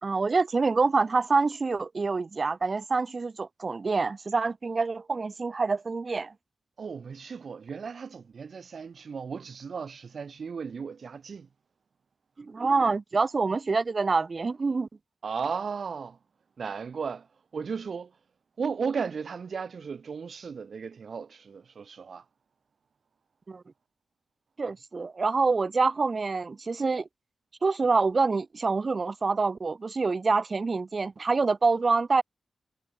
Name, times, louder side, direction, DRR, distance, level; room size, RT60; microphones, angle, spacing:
voice 1, 0.0-6.3 12.4-14.9 23.5-23.6 24.6-27.1 27.6-32.2, right 4 dB, 40° right, 1.1 m, -26 dB
voice 2, 6.8-11.5 15.2-16.2 16.6-17.3 17.5-18.1 18.6-22.2, right 5 dB, 60° right, 2.3 m, -35 dB
wide cardioid pair, 90°, 0 cm